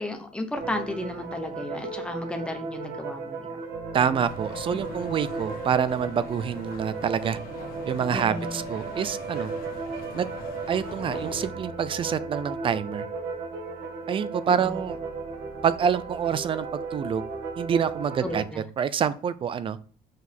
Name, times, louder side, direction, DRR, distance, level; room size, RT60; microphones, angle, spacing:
voice 1, 0.0-3.6 4.6-5.0 8.1-8.6 14.5-14.8 18.2-18.7, left 1 dB, 5° left, 5 dB, 1.1 m, -34 dB
sound 1, 0.5-18.4, right 4 dB, 85° right, 1.8 m, -35 dB
voice 2, 3.9-7.4 7.8-9.5 10.1-10.3 10.7-13.0 14.1-15.0 15.6-16.7 16.9-17.2 17.6-19.8, right 7 dB, 35° right, 15 dB, 0.5 m, -27 dB
sound 2, 4.2-11.5, left 4 dB, 65° left, 1.7 m, -42 dB
Organ, 7.1-18.1, left 1 dB, 30° left, 2.0 m, -51 dB
6.3 x 4.6 x 5.3 m, 0.42 s
cardioid pair, 155°, 16 cm